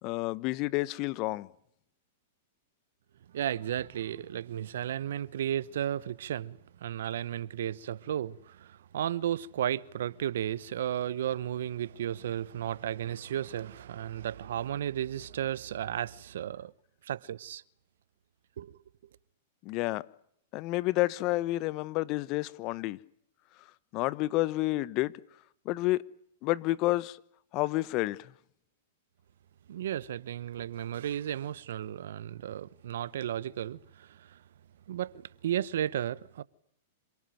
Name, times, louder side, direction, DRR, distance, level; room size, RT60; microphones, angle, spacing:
voice 1, 0.0-1.5 19.6-20.0 20.5-23.0 23.9-25.1 25.6-26.0 26.4-27.2 27.5-28.3, left 19 dB, 45° left, 1.0 m, -29 dB
voice 2, 3.3-16.7 17.0-17.6 18.6-18.8 29.7-34.4 34.9-36.4, right 10 dB, 70° right, 0.9 m, -34 dB
27.0 x 18.0 x 9.1 m
hypercardioid pair, 110°, 0 cm